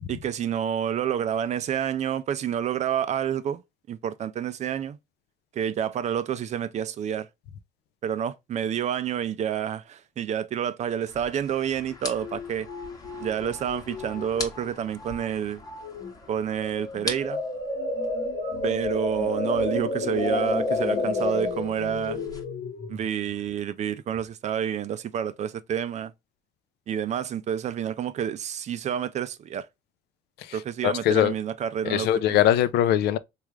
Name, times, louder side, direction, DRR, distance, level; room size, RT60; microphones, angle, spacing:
voice 1, 0.1-3.6 3.9-5.0 5.5-7.3 8.0-12.7 13.2-15.6 16.3-17.4 18.6-22.2 22.9-26.1 26.9-29.7 30.5-32.4, right 9 dB, 45° right, 0.4 m, -29 dB
sound 1, 11.0-22.4, left 2 dB, 20° left, 0.9 m, -42 dB
sound 2, 11.9-12.0 12.2-14.7 15.0-15.3 15.6-16.1 16.6-23.5, left 3 dB, 45° left, 0.9 m, -30 dB
voice 2, 30.8-31.3 31.9-33.2, left 11 dB, 75° left, 0.4 m, -21 dB
3.4 x 2.4 x 3.0 m
cardioid pair, 110°, 17 cm